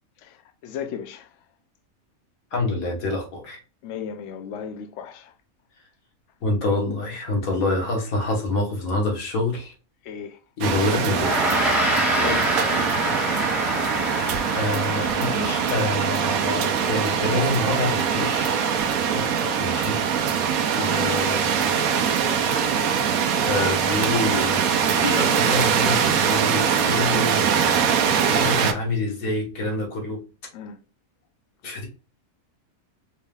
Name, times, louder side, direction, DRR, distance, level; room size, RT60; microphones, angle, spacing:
voice 1, 0.6-1.3 3.8-5.3 10.1-10.4 12.1-13.1 19.4-19.6 30.5-30.8, left 7 dB, 65° left, 0.8 m, -35 dB
voice 2, 2.5-3.6 6.4-9.7 10.6-11.8 14.5-18.5 19.1-19.2 19.6-20.0 20.7-21.7 23.3-24.7 25.0-27.4 27.9-30.2 31.6-31.9, left 2 dB, 90° left, 1.7 m, -27 dB
sound 1, 10.6-28.7, right 7 dB, 90° right, 1.1 m, -23 dB
Gong, 11.1-20.6, right 1 dB, ahead, 1.0 m, -28 dB
4.5 x 3.3 x 2.3 m
omnidirectional pair, 1.4 m